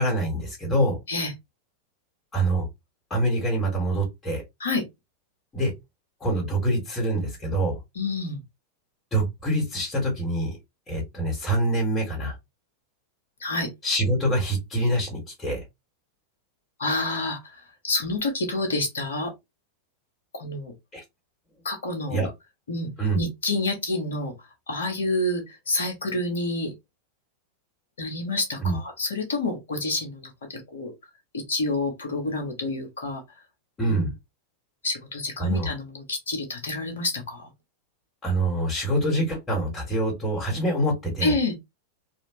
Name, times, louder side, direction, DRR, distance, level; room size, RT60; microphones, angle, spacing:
voice 1, 0.0-1.0 2.3-2.7 3.1-4.4 5.5-5.7 6.2-7.8 9.1-10.6 10.9-12.3 13.8-15.6 20.9-21.0 22.1-22.3 23.0-23.2 28.6-28.8 33.8-34.1 35.4-35.7 38.2-41.4, right 1 dB, 15° left, 2.1 m, -25 dB
voice 2, 7.9-8.4 13.4-13.7 16.8-17.6 17.8-19.3 20.3-20.7 21.6-22.3 22.7-24.3 24.7-26.7 28.0-30.9 31.3-33.2 33.9-34.1 34.8-37.5 41.2-41.6, left 2 dB, 65° left, 1.4 m, -28 dB
4.0 x 2.8 x 3.1 m
figure-of-eight pair, 90°, 0 cm